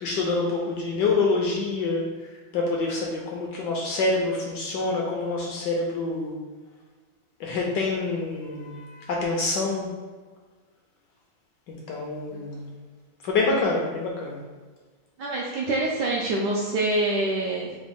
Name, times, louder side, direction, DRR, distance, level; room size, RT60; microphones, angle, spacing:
voice 1, 0.0-2.1 2.5-6.3 7.4-9.9 11.7-12.7 13.2-14.4, left 3 dB, 75° left, -2 dB, 1.1 m, -26 dB
voice 2, 15.2-17.7, right 2 dB, 75° right, -3 dB, 1.0 m, -26 dB
4.8 x 2.2 x 3.6 m, 1.4 s
omnidirectional pair, 2.3 m